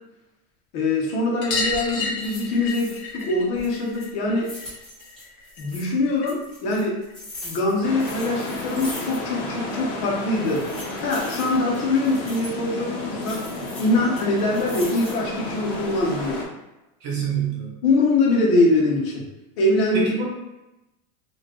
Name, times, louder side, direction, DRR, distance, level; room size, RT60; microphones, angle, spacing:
voice 1, 0.7-4.5 5.6-7.0 7.4-10.7 11.0-13.4 13.8-16.4 17.8-19.2 19.6-20.1, left 2 dB, 45° left, -2 dB, 1.0 m, -23 dB
sound 1, 1.4-6.5 6.8-8.0 9.3-9.4 9.6-9.7 10.0-10.1 11.4-11.5 11.8-11.9 12.2-12.3 13.6-13.7 14.4-14.5, left 4 dB, 75° left, 0.9 m, -33 dB
sound 2, 1.5-1.8 2.2-3.3 3.5-5.9 6.3-9.4 9.7-9.8 10.3-12.6 13.2-15.3 15.8-16.3, left 1 dB, ahead, 1.2 m, -41 dB
sound 3, 7.8-16.4, left 2 dB, 20° left, 0.5 m, -32 dB
voice 2, 17.0-17.8 19.9-20.3, right 6 dB, 30° right, -3 dB, 0.5 m, -26 dB
4.1 x 2.5 x 3.0 m, 0.97 s
supercardioid pair, 170°, 42 cm